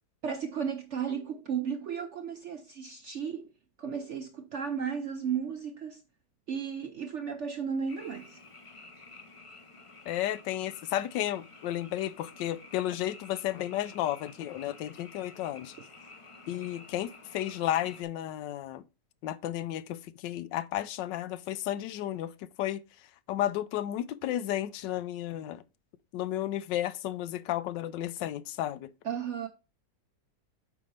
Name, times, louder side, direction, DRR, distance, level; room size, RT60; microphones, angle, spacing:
voice 1, 0.2-3.5 3.8-6.0 6.5-8.4 29.0-29.5, right 7 dB, 70° right, 0.7 m, -34 dB
Frog, 7.9-18.0, left 3 dB, 35° left, 0.5 m, -51 dB
voice 2, 10.1-15.7 16.5-18.8 19.2-22.3 22.6-22.8 23.3-25.6 26.1-28.9, left 13 dB, 90° left, 1.3 m, -33 dB
8.4 x 5.3 x 3.3 m
omnidirectional pair, 1.9 m